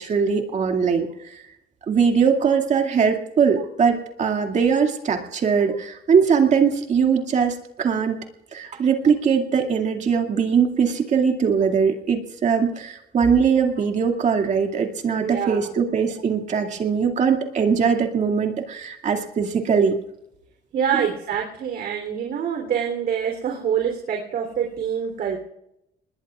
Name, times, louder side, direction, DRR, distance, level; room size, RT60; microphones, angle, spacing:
voice 1, 0.0-1.5 1.9-8.2 8.5-20.0 20.9-21.1, right 6 dB, 45° right, 3 dB, 2.3 m, -21 dB
voice 2, 15.2-15.7 20.7-25.4, right 8 dB, 60° right, 2 dB, 3.5 m, -26 dB
26.5 x 21.0 x 2.5 m, 0.82 s
cardioid pair, 110°, 17 cm